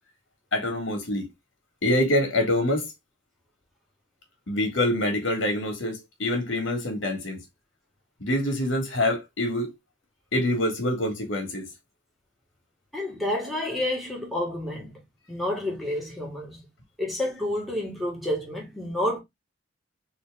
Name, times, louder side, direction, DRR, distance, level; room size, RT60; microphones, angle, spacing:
voice 1, 0.5-1.3 1.8-2.9 4.5-7.4 8.2-9.7 10.3-11.7, left 1 dB, 70° left, 1.6 m, -25 dB
voice 2, 12.9-15.0 15.3-16.6 17.0-19.2, left 1 dB, ahead, 1.6 m, -29 dB
4.0 x 2.9 x 3.4 m
head